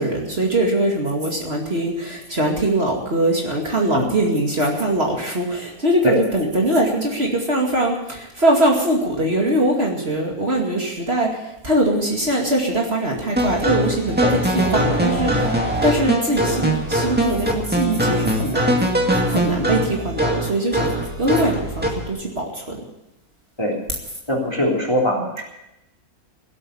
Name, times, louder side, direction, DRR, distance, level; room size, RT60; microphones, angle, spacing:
voice 1, 0.0-22.8, right 1 dB, 40° right, -1 dB, 2.6 m, -22 dB
sound 1, 13.4-22.1, equal, 5° right, 2.1 m, -21 dB
voice 2, 24.3-25.4, left 1 dB, 15° left, -2 dB, 3.4 m, -21 dB
17.5 x 8.7 x 8.7 m, 0.91 s
omnidirectional pair, 1.6 m